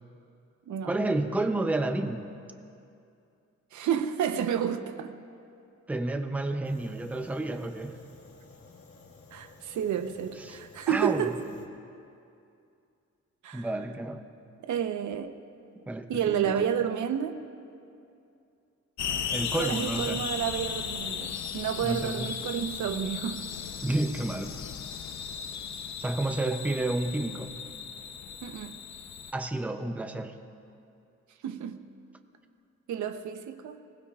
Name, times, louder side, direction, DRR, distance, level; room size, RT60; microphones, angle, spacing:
voice 1, 0.9-2.4 5.9-8.0 10.4-10.6 10.9-11.3 13.5-14.3 15.9-16.7 19.3-20.3 21.8-22.3 23.8-24.7 26.0-27.5 29.3-30.4, right 2 dB, 5° right, 7 dB, 0.5 m, -30 dB
voice 2, 3.7-5.1 9.3-11.4 13.4-13.7 14.6-15.4 16.1-17.4 19.6-23.5 28.4-28.7 31.4-31.8 32.9-33.8, right 9 dB, 85° right, 8 dB, 0.8 m, -30 dB
Fire, 6.6-11.7, left 4 dB, 50° left, 1.5 m, -53 dB
sound 1, 19.0-29.3, left 7 dB, 70° left, 0.8 m, -36 dB
25.0 x 19.0 x 2.4 m, 2.6 s
wide cardioid pair, 165°, 29 cm